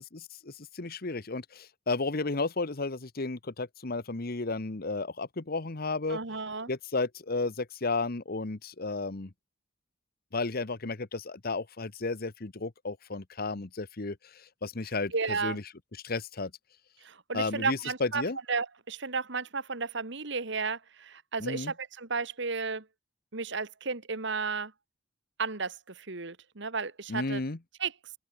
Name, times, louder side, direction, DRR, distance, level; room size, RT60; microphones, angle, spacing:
voice 1, 0.1-6.2 6.7-9.3 10.3-14.2 14.6-15.1 15.4-15.6 16.0-16.5 17.3-18.4 21.4-21.7 27.1-27.6, left 3 dB, 50° left, 1.2 m, -33 dB
voice 2, 6.1-6.7 15.1-15.6 17.0-18.2 18.5-22.9 23.3-24.7 25.4-27.4 27.8-27.9, right 4 dB, 65° right, 2.0 m, -33 dB
open air
head